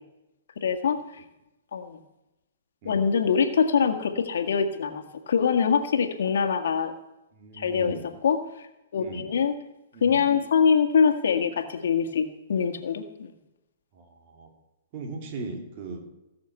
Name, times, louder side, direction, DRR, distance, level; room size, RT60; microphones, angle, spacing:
voice 1, 0.6-1.2 1.7-2.0 2.9-6.9 7.5-8.0 8.2-8.7 8.9-9.5 10.0-13.3, left 6 dB, 75° left, 6 dB, 1.8 m, -24 dB
voice 2, 7.3-8.1 9.0-9.3 9.9-10.3 13.9-14.5 14.9-16.0, right 3 dB, 45° right, 3 dB, 3.2 m, -38 dB
17.5 x 7.1 x 8.2 m, 0.96 s
hypercardioid pair, 135°, 0 cm